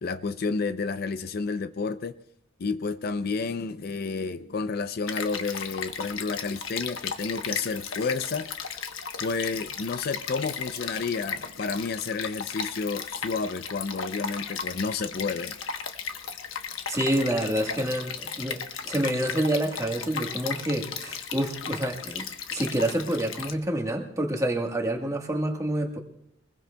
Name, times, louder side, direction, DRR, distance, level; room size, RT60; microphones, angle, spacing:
voice 1, 0.0-2.2 2.6-8.6 9.2-15.6, left 4 dB, 50° left, 0.5 m, -30 dB
Stream, 5.1-23.5, left 6 dB, 90° left, 1.0 m, -36 dB
voice 2, 16.9-26.0, right 1 dB, 15° right, 1.4 m, -28 dB
23.5 x 21.0 x 2.2 m
head